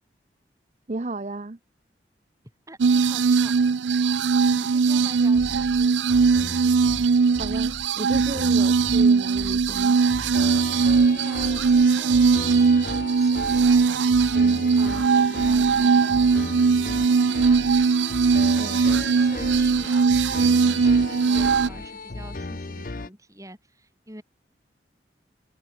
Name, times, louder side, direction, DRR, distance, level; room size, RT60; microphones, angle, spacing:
voice 1, 0.9-1.6 7.4-10.0 18.6-18.8, right 2 dB, 40° right, 0.7 m, -33 dB
voice 2, 2.7-3.6 4.3-6.8 11.2-16.4 17.1-18.3 18.6-24.2, right 1 dB, 20° right, 7.0 m, -44 dB
sound 1, 2.8-21.7, right 5 dB, 85° right, 0.5 m, -20 dB
sound 2, 5.3-23.1, left 2 dB, 50° left, 0.8 m, -36 dB
head